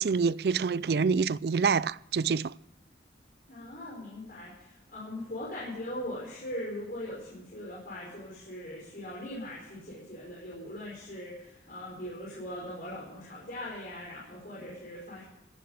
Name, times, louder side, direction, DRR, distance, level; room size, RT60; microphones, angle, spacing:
voice 1, 0.0-2.5, right 5 dB, 60° right, 0.4 m, -26 dB
voice 2, 3.5-15.2, left 1 dB, 50° left, 5.3 m, -40 dB
16.0 x 9.9 x 6.8 m
head